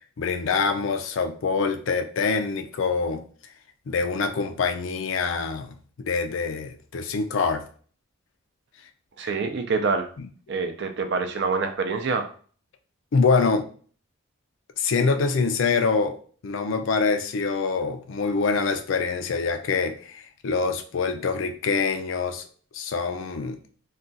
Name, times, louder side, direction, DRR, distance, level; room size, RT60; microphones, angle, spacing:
voice 1, 0.2-3.2 3.9-7.6 9.2-9.3 10.2-10.3 13.1-13.7 14.8-16.2 16.4-22.4 22.7-23.6, left 4 dB, 70° left, 7 dB, 0.4 m, -25 dB
voice 2, 9.2-10.1 10.5-12.3, right 4 dB, 60° right, 7 dB, 0.5 m, -26 dB
2.4 x 2.3 x 3.9 m, 0.43 s
head